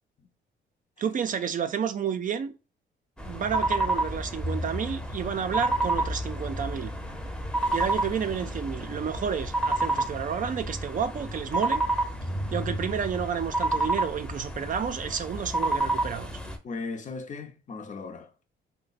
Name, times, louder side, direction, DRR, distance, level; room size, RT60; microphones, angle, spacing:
voice 1, 1.0-2.5 3.3-6.9 7.7-11.8 12.5-16.3, right 7 dB, 45° right, 0.4 m, -30 dB
sound 1, 3.2-16.6, right 1 dB, 5° left, 0.7 m, -30 dB
voice 2, 16.6-18.5, left 4 dB, 40° left, 0.6 m, -38 dB
3.2 x 2.1 x 4.0 m
cardioid pair, 90°, 20 cm